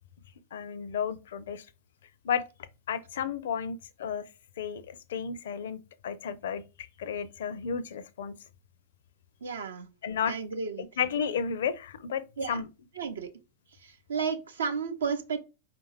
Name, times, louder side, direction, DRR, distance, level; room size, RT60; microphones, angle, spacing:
voice 1, 0.5-1.7 2.2-2.4 2.9-4.2 4.6-6.6 7.0-8.3 10.0-10.3 10.8-12.7, left 7 dB, 60° left, 0.5 m, -32 dB
voice 2, 9.4-9.9 10.3-10.8 12.4-12.6 13.0-13.3 13.8-15.4, right 5 dB, 70° right, 0.5 m, -32 dB
4.8 x 2.6 x 3.0 m
figure-of-eight pair, 90°, 0 cm